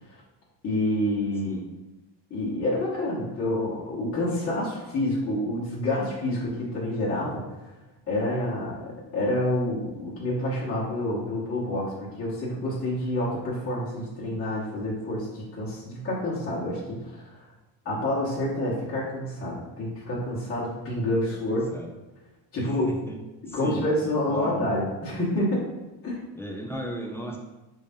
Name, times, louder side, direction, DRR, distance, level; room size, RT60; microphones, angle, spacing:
voice 1, 0.6-1.6 2.3-7.4 8.1-17.4 17.8-21.6 22.5-22.9 23.5-25.7 26.0-26.2, left 1 dB, 30° left, -9 dB, 1.3 m, -28 dB
voice 2, 21.3-21.9 22.6-23.2 23.5-23.9 24.2-24.6 26.4-27.4, equal, 5° left, -1 dB, 0.3 m, -35 dB
4.9 x 2.8 x 3.5 m, 1.1 s
cardioid pair, 150°, 42 cm